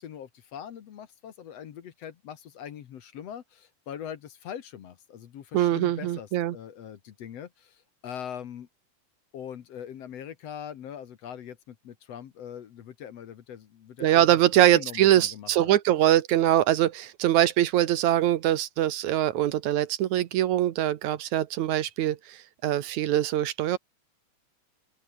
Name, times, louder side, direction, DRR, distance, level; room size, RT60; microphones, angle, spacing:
voice 1, 0.0-8.7 9.3-14.3 14.5-15.7, left 9 dB, 60° left, 2.3 m, -42 dB
voice 2, 5.5-6.6 14.0-23.8, right 12 dB, 70° right, 2.3 m, -23 dB
open air
omnidirectional pair, 3.6 m